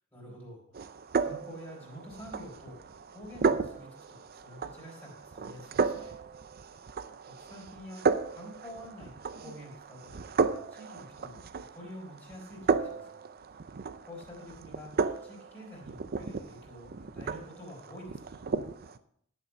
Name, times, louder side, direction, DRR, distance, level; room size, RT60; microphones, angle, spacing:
voice 1, 0.1-0.6 1.2-2.8 3.1-6.1 7.2-10.3 10.7-13.2 14.0-14.9 15.2-18.5, equal, 15° left, -4 dB, 3.4 m, -48 dB
sound 1, 0.7-19.0, right 5 dB, 45° right, 0.6 m, -34 dB
11.0 x 7.2 x 5.4 m, 0.67 s
head